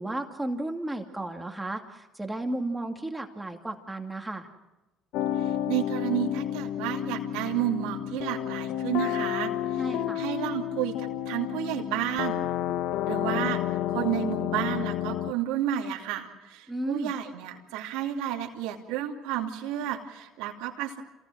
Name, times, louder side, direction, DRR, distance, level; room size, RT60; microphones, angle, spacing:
voice 1, 0.0-4.5 9.8-10.2 16.7-17.1, right 1 dB, 10° right, 3 dB, 2.4 m, -33 dB
sound 1, 5.1-15.3, left 11 dB, 75° left, 0.8 m, -30 dB
voice 2, 5.4-12.4 13.1-13.6 13.9-21.0, right 11 dB, 85° right, 2 dB, 2.7 m, -31 dB
27.5 x 19.0 x 6.4 m, 1.0 s
supercardioid pair, 85°, 0 cm